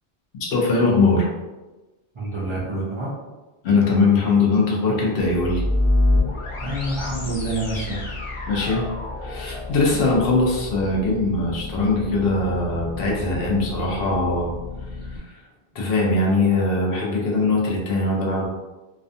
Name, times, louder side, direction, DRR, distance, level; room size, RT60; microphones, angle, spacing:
voice 1, 0.5-1.3 3.6-5.6 8.5-8.9 9.2-14.5 15.1-15.2 15.7-18.5, left 3 dB, 65° left, -2 dB, 0.8 m, -21 dB
voice 2, 2.1-3.1 6.6-8.1, right 2 dB, 45° right, -7 dB, 0.4 m, -27 dB
sound 1, 5.2-15.2, left 2 dB, 50° left, 0.4 m, -28 dB
2.4 x 2.2 x 2.5 m, 1.1 s
omnidirectional pair, 1.1 m